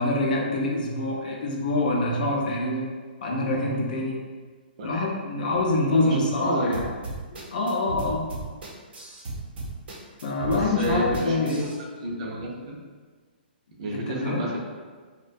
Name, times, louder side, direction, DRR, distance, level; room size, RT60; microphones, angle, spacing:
voice 1, 0.0-2.9 3.2-4.2 4.8-6.9 7.5-8.3 10.2-11.7 13.9-14.4, left 2 dB, 50° left, -2 dB, 0.5 m, -25 dB
voice 2, 5.9-6.8 10.5-11.7 12.0-12.8 13.8-14.6, equal, 35° right, -3 dB, 0.4 m, -30 dB
sound 1, 6.7-11.8, right 2 dB, 65° right, 0.7 m, -35 dB
2.5 x 2.1 x 2.5 m, 1.5 s
hypercardioid pair, 175°, 6 cm